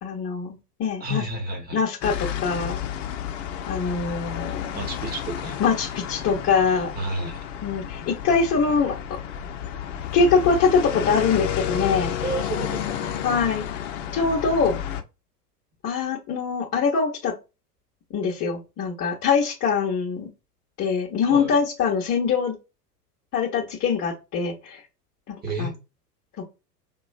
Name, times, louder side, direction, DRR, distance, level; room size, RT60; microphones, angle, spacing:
voice 1, 0.0-1.2 1.7-2.8 3.7-4.7 5.6-6.9 7.6-9.0 10.1-12.2 13.2-13.7 14.1-14.8 15.8-17.3 18.1-20.3 20.8-22.5 23.3-24.8 25.3-25.7, left 5 dB, 30° left, 1.1 m, -23 dB
voice 2, 1.0-1.8 4.7-5.6 6.9-7.4 12.2-13.1 21.3-21.5 25.4-25.7, right 1 dB, 20° right, 1.4 m, -31 dB
sound 1, 2.0-15.0, left 9 dB, 50° left, 0.7 m, -31 dB
5.5 x 3.0 x 2.4 m
figure-of-eight pair, 90°, 48 cm